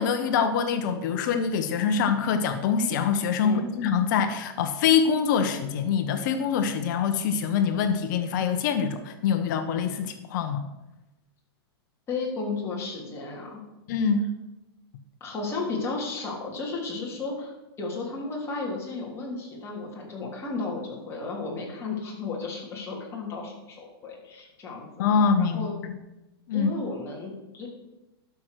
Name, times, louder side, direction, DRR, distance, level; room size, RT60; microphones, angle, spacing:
voice 1, 0.0-10.7 13.9-14.3 25.0-25.9 26.5-26.8, left 6 dB, 50° left, 8 dB, 1.0 m, -25 dB
voice 2, 12.1-13.6 15.2-24.9 25.4-25.7 26.5-27.7, left 3 dB, 20° left, -3 dB, 3.4 m, -34 dB
12.0 x 6.2 x 6.6 m, 1.0 s
hypercardioid pair, 145°, 13 cm